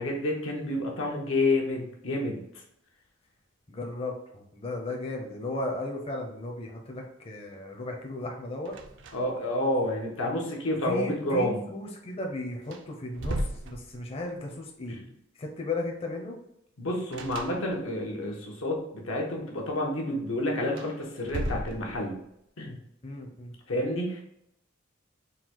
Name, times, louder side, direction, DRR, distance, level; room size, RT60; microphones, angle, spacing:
voice 1, 0.0-2.4 9.1-11.6 14.9-15.0 16.8-22.2 22.6-22.8 23.7-24.2, left 1 dB, 85° left, -1 dB, 1.0 m, -29 dB
voice 2, 3.7-8.8 10.8-15.0 15.4-16.4 23.0-23.5, left 2 dB, 30° left, 0 dB, 0.6 m, -35 dB
sound 1, 8.6-9.5 9.8-9.9 12.1-12.2 12.6-14.3 17.1-18.1 20.6-22.3, right 1 dB, 65° right, 0.5 m, -36 dB
3.8 x 2.3 x 4.4 m, 0.77 s
head